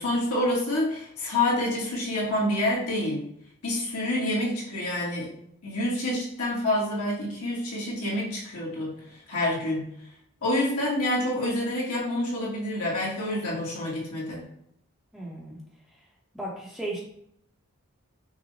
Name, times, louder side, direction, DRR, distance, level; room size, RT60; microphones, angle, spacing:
voice 1, 0.0-3.2 3.6-5.3 5.6-8.9 9.3-9.9 10.4-14.4, left 1 dB, 80° left, -4 dB, 1.6 m, -27 dB
voice 2, 15.1-15.6 15.9-16.0 16.3-17.0, right 1 dB, ahead, -4 dB, 0.8 m, -35 dB
5.9 x 2.2 x 4.0 m, 0.71 s
head